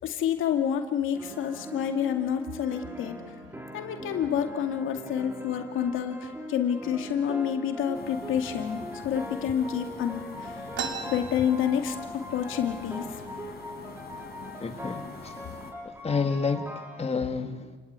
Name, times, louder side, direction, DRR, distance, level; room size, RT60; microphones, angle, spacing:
voice 1, 0.0-3.2 3.7-10.6 11.1-12.0 12.3-13.2, left 8 dB, 85° left, 2.3 m, -28 dB
sound 1, 1.1-17.1, equal, 10° right, 4.3 m, -41 dB
sound 2, 7.9-15.7, left 5 dB, 50° left, 4.4 m, -44 dB
sound 3, 10.7-12.3 12.7-12.8 13.0-13.7 14.3-14.4 15.1-15.3 15.8-16.2, right 6 dB, 75° right, 3.2 m, -37 dB
voice 2, 14.6-15.3 16.0-17.8, left 4 dB, 30° left, 2.2 m, -30 dB
29.0 x 19.0 x 9.6 m
cardioid pair, 90°, 20 cm